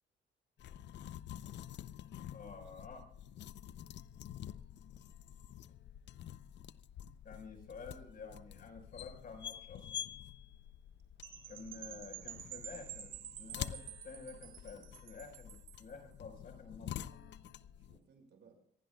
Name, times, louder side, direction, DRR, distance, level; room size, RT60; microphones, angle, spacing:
sound 1, 0.6-18.0, left 10 dB, 65° left, 0.6 m, -48 dB
voice 1, 2.3-3.0 7.2-10.0 11.5-13.8 14.0-16.9, left 4 dB, 45° left, 4 dB, 4.9 m, -50 dB
voice 2, 11.2-12.6 16.5-18.5, right 4 dB, 60° right, 4 dB, 5.7 m, -64 dB
Percussion / Wind chime, 11.2-15.9, right 12 dB, 85° right, 2.1 m, -50 dB
26.0 x 16.5 x 2.3 m, 0.64 s
cardioid pair, 90°, 20 cm